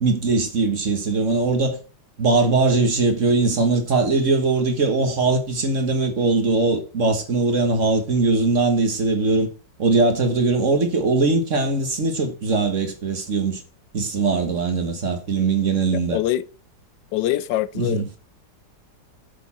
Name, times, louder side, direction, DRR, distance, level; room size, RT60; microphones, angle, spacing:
voice 1, 0.0-1.8 2.2-9.5 9.8-13.6 13.9-16.2 17.8-18.0, right 3 dB, 45° right, 1.7 m, -21 dB
voice 2, 15.9-16.4 17.1-18.2, left 13 dB, 85° left, 1.3 m, -24 dB
8.3 x 6.8 x 4.3 m
omnidirectional pair, 1.9 m